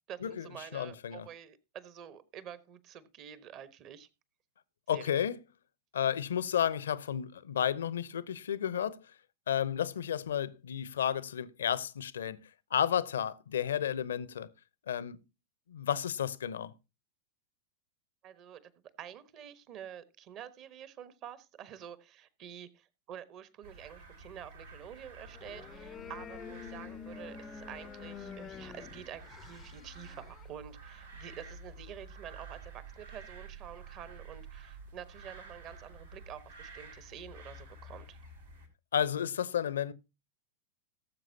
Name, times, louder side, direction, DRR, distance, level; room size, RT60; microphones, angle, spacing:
voice 1, 0.1-4.1 4.9-5.2 18.2-18.7 19.0-38.2, right 9 dB, 35° right, 1.1 m, -48 dB
voice 2, 0.7-1.3 4.9-5.4 5.9-9.0 9.5-12.4 12.7-14.5 14.9-15.2 15.7-16.7 38.9-39.9, left 9 dB, 65° left, 0.6 m, -32 dB
sound 1, 23.6-38.7, right 3 dB, 75° right, 4.3 m, -50 dB
sound 2, 25.3-30.5, left 7 dB, 25° left, 0.5 m, -47 dB
18.0 x 7.6 x 2.8 m
figure-of-eight pair, 90°, 0 cm